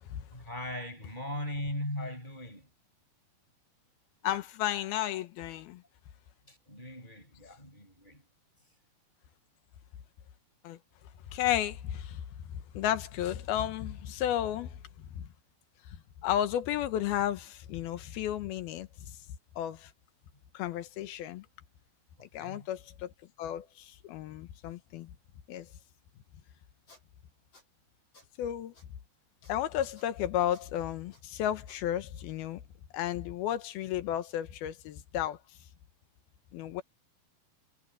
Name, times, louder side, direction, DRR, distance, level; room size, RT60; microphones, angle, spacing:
voice 1, 0.3-2.7 6.5-8.2 22.2-22.7, left 1 dB, 10° left, 5.7 m, -39 dB
voice 2, 4.2-5.8 10.6-10.8 11.3-12.2 12.5-15.3 15.9-19.2 19.6-19.9 20.5-21.5 22.2-23.1 23.4-25.1 25.5-25.7 28.4-28.7 29.5-32.6 32.9-35.4 36.5-36.8, left 11 dB, 80° left, 3.0 m, -33 dB
Squeak, 26.9-27.0 27.5-27.6 28.1-28.3 28.7-28.9 29.4-29.5 29.9-30.1 30.5-30.6 31.1-31.2 31.7-31.8, left 2 dB, 40° left, 8.0 m, -58 dB
omnidirectional pair, 4.5 m